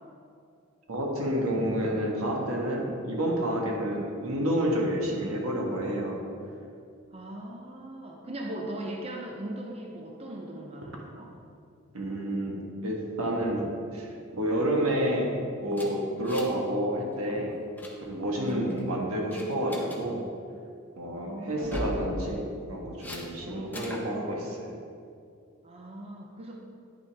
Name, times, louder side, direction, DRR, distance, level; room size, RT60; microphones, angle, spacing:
voice 1, 0.9-6.2 11.9-15.3 15.6-17.5 18.0-20.2 21.0-24.7, equal, 85° right, -1 dB, 1.3 m, -29 dB
voice 2, 7.1-11.3 18.4-18.7 21.1-22.0 23.4-23.7 25.6-26.6, right 1 dB, 30° right, 0 dB, 0.6 m, -39 dB
sound 1, 15.7-16.7 16.9-17.1 17.5-17.9 18.5-18.8 19.3-20.0 21.5-22.0 23.0-23.2 23.7-24.1, left 1 dB, 10° left, 0.7 m, -38 dB
9.1 x 5.8 x 3.4 m, 2.4 s
head